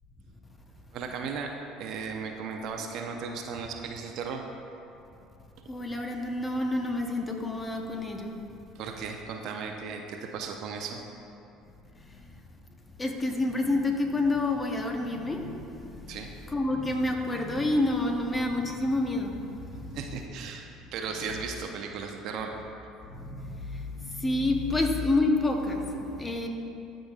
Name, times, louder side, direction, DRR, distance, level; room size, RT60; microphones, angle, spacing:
voice 1, 0.9-1.5 1.8-4.4 8.7-11.0 16.1-16.3 19.9-20.7 20.9-22.5, right 5 dB, 60° right, 3 dB, 0.7 m, -36 dB
voice 2, 5.7-8.3 11.9-12.3 13.0-16.2 16.5-20.0 23.1-26.5, left 2 dB, 20° left, 3 dB, 1.0 m, -29 dB
13.0 x 5.1 x 2.5 m, 2.7 s
hypercardioid pair, 75°, 0 cm